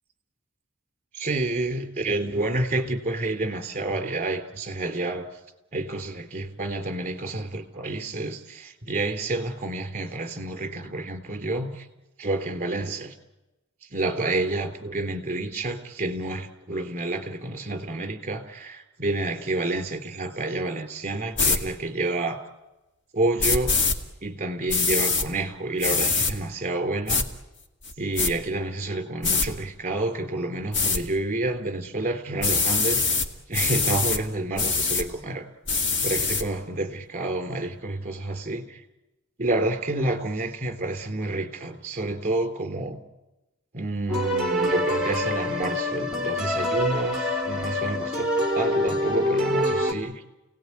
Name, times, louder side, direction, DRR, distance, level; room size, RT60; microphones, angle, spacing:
voice 1, 1.1-5.3 5.7-11.9 12.2-13.1 13.9-22.4 23.1-23.7 24.2-27.2 28.0-33.0 33.5-35.5 36.0-38.8 39.4-43.0 43.7-50.2, right 2 dB, 35° right, 8 dB, 3.4 m, -29 dB
sound 1, 21.4-21.6 23.4-24.0 24.7-25.3 25.8-26.3 27.1-27.3 27.8-28.3 29.2-29.5 30.7-31.0 32.4-33.3 33.5-34.2 34.6-35.1 35.7-36.4, left 4 dB, 60° left, 2.2 m, -23 dB
sound 2, 44.1-49.9, equal, 5° right, 2.8 m, -25 dB
29.5 x 18.5 x 9.7 m, 1.0 s
head